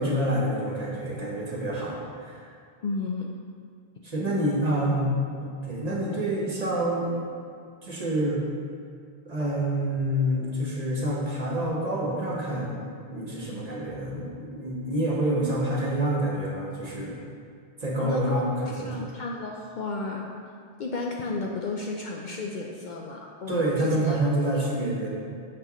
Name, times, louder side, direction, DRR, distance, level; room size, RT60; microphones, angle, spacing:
voice 1, 0.0-2.5 4.0-5.1 5.4-7.1 7.8-8.4 9.2-12.8 13.1-17.2 17.8-19.0 23.5-25.1, right 1 dB, 40° right, -4 dB, 1.1 m, -27 dB
voice 2, 2.8-3.4 18.0-18.5 18.7-20.4 20.8-24.7, left 3 dB, 60° left, 0 dB, 0.6 m, -33 dB
6.6 x 6.0 x 3.0 m, 2.2 s
omnidirectional pair, 1.1 m